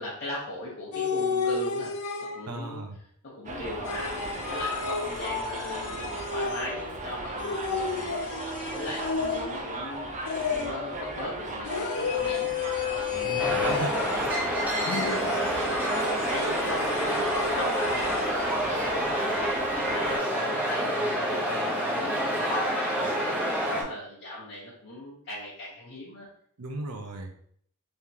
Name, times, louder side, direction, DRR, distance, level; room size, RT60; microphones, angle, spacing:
voice 1, 0.0-1.9 2.3-2.8 3.2-8.3 8.7-10.1 10.4-12.5 13.1-13.4 14.2-14.3 14.7-26.3, left 1 dB, 50° left, -8 dB, 1.0 m, -39 dB
sound 1, 0.9-2.6 3.8-6.9 7.4-9.7 10.3-11.0 11.6-14.4 14.9-18.4, left 5 dB, 85° left, 0.5 m, -32 dB
voice 2, 2.5-2.9 13.2-14.3 26.6-27.3, right 2 dB, 90° right, 4 dB, 0.6 m, -35 dB
Subway metro underground, 3.4-20.2, right 2 dB, 35° right, 0.5 m, -36 dB
sound 2, 13.4-23.8, equal, 5° right, 0.8 m, -28 dB
3.6 x 3.3 x 2.8 m, 0.63 s
head